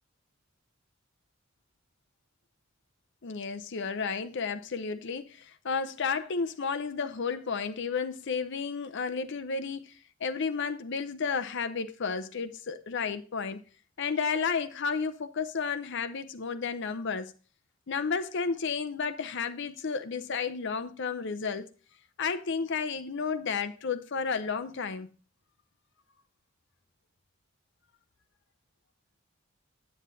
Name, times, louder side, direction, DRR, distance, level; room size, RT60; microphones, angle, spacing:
voice 1, 3.2-13.6 14.0-17.3 17.9-21.7 22.2-25.1, left 5 dB, 60° left, 0.6 m, -32 dB
9.6 x 7.6 x 3.9 m
head